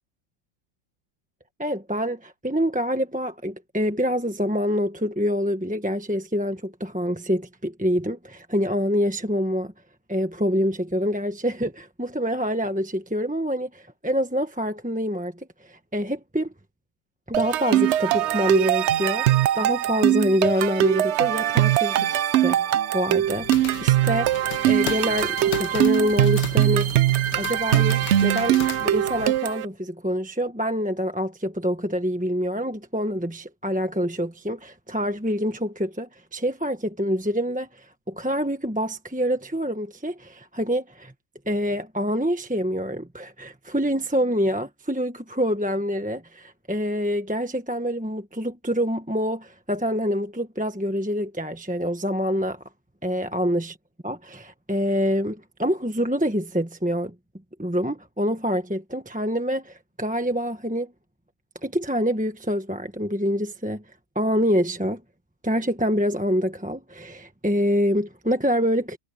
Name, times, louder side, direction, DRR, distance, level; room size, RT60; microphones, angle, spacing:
voice 1, 1.6-9.7 10.1-16.5 17.3-22.6 22.9-26.9 27.3-41.1 41.5-52.6 53.0-53.7 54.0-57.1 57.6-60.9 61.6-63.8 64.1-65.0 65.4-69.0, equal, 5° right, 0.9 m, -26 dB
sound 1, 17.3-29.7, right 13 dB, 85° right, 0.6 m, -22 dB
sound 2, 23.2-29.4, left 11 dB, 90° left, 1.6 m, -36 dB
omnidirectional pair, 1.8 m